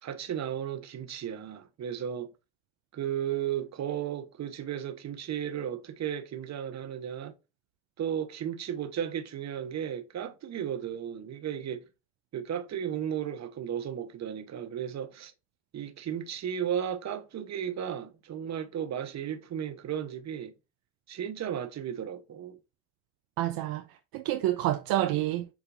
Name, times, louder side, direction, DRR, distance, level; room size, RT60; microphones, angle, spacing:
voice 1, 0.0-2.3 2.9-7.3 8.0-11.9 12.3-15.3 15.7-20.5 21.1-22.6, right 9 dB, 45° right, 1.0 m, -34 dB
voice 2, 23.4-25.5, right 14 dB, 65° right, 0.6 m, -29 dB
7.0 x 2.6 x 2.6 m
supercardioid pair, 70°, 38 cm